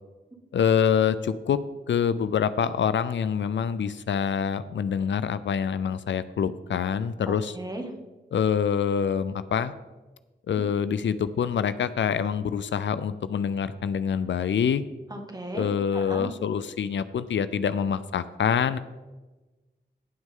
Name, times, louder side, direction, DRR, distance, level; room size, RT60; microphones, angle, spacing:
voice 1, 0.5-1.6 1.9-7.6 8.3-9.7 10.5-14.8 15.5-18.8, left 7 dB, 75° left, 14 dB, 0.5 m, -26 dB
voice 2, 7.3-7.9 15.1-16.3, right 1 dB, 20° right, 3 dB, 1.8 m, -36 dB
18.0 x 6.2 x 3.8 m, 1.2 s
wide cardioid pair, 80°, 19 cm